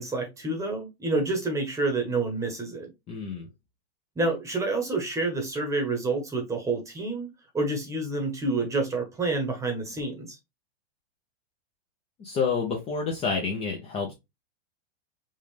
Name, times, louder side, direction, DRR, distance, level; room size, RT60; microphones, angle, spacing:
voice 1, 0.0-2.9 4.2-7.3 7.5-10.4, right 3 dB, 10° right, 1.1 m, -28 dB
voice 2, 3.1-3.5 12.2-14.1, left 5 dB, 15° left, 0.6 m, -29 dB
5.4 x 2.5 x 3.2 m
supercardioid pair, 150°, 33 cm